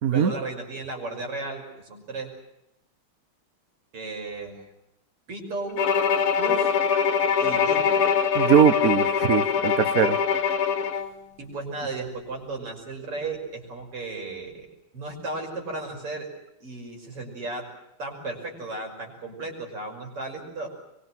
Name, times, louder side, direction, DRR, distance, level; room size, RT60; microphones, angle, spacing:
voice 1, 0.1-2.3 3.9-4.7 5.3-5.8 6.4-6.7 7.4-8.0 11.4-14.7 14.9-16.3 16.6-17.7 18.0-20.8, right 3 dB, 90° right, 2 dB, 6.8 m, -35 dB
Bowed string instrument, 5.8-11.1, left 7 dB, 75° left, 2.6 m, -23 dB
voice 2, 8.3-10.2, right 8 dB, 50° right, 13 dB, 1.2 m, -21 dB
24.0 x 23.5 x 7.6 m, 0.85 s
omnidirectional pair, 2.4 m